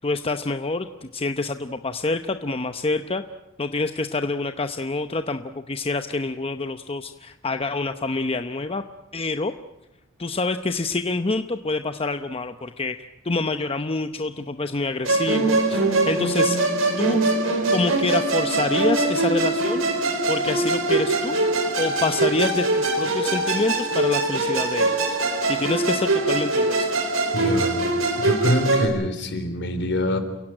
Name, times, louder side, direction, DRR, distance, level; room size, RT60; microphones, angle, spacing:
voice 1, 0.0-3.2 3.6-8.8 9.1-9.5 10.2-13.0 13.2-16.6 17.0-17.2 17.7-19.8 20.3-21.4 21.8-25.2 25.5-26.9, left 3 dB, 30° left, 8 dB, 0.8 m, -27 dB
Musical instrument, 15.0-28.9, right 2 dB, 70° right, 4.3 m, -22 dB
voice 2, 27.3-27.8 28.2-30.2, equal, 60° left, 9 dB, 3.7 m, -24 dB
29.5 x 17.0 x 9.0 m, 0.96 s
head